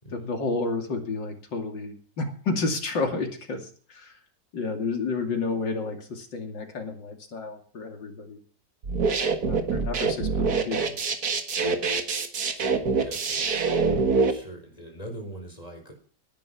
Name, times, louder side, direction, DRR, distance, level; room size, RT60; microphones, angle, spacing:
voice 1, 0.1-4.2 4.5-8.4 9.4-11.0, left 3 dB, 80° left, 4 dB, 3.3 m, -31 dB
sound 1, 8.8-14.3, right 4 dB, 55° right, 2.1 m, -25 dB
voice 2, 12.5-13.5 14.3-15.9, right 1 dB, 20° left, 3 dB, 5.0 m, -42 dB
18.0 x 11.0 x 6.0 m, 0.43 s
omnidirectional pair, 2.0 m